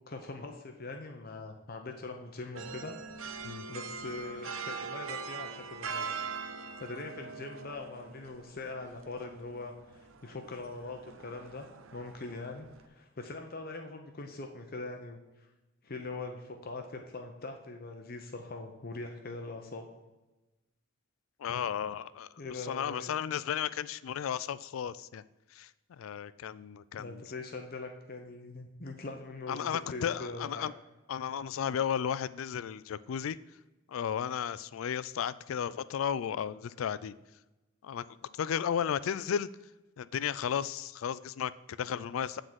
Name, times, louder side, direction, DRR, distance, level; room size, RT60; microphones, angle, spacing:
voice 1, 0.1-2.9 3.7-6.3 6.8-11.7 11.9-15.2 15.8-19.9 22.4-23.1 27.0-30.7, left 3 dB, 50° left, 4 dB, 0.8 m, -42 dB
sound 1, 2.6-12.9, right 5 dB, 80° right, 0.6 m, -42 dB
voice 2, 21.4-25.2 25.5-25.7 26.0-27.2 29.5-30.7 31.1-33.4 33.9-37.1 37.8-38.1 38.3-39.5 40.0-42.4, left 8 dB, 90° left, 16 dB, 0.3 m, -34 dB
9.5 x 3.9 x 6.1 m, 1.1 s
head